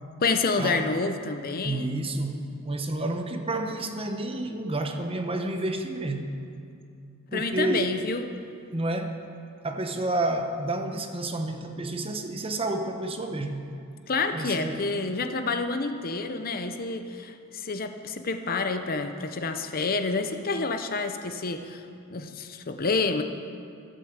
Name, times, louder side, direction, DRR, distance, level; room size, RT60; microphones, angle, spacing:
voice 1, 0.2-1.9 7.3-8.2 14.1-21.8 22.1-23.2, left 3 dB, 45° left, 7 dB, 0.7 m, -28 dB
voice 2, 1.6-6.3 7.3-8.0 8.7-9.2 9.6-13.6 14.3-14.9, right 2 dB, 25° right, 5 dB, 0.9 m, -30 dB
14.0 x 8.2 x 7.3 m, 2.5 s
head